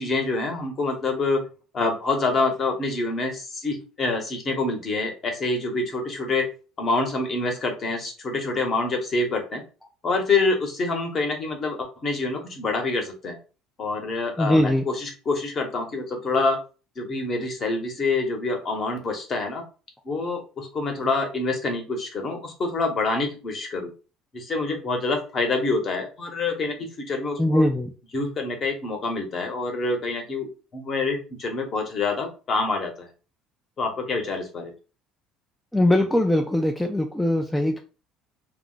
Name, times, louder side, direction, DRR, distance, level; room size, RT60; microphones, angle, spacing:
voice 1, 0.0-1.4 1.7-6.5 6.8-9.6 10.0-13.4 13.8-16.6 17.0-19.6 20.0-23.9 24.3-26.8 27.1-27.7 28.1-30.5 30.7-33.1 33.8-34.7, left 3 dB, 35° left, 3 dB, 0.9 m, -26 dB
voice 2, 14.4-14.8 27.4-27.9 35.7-37.8, left 1 dB, 5° left, 3 dB, 0.3 m, -21 dB
2.3 x 2.1 x 3.8 m, 0.35 s
cardioid pair, 125°, 0 cm